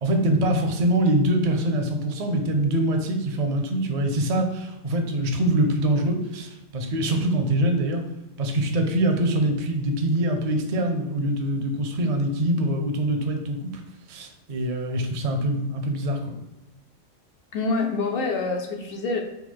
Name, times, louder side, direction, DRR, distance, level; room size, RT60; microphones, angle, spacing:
voice 1, 0.0-8.0 8.4-13.8 14.1-16.3, right 1 dB, 50° right, 4 dB, 0.4 m, -24 dB
voice 2, 17.5-19.2, left 3 dB, 60° left, 3 dB, 0.6 m, -26 dB
3.9 x 2.4 x 4.4 m, 0.98 s
omnidirectional pair, 1.4 m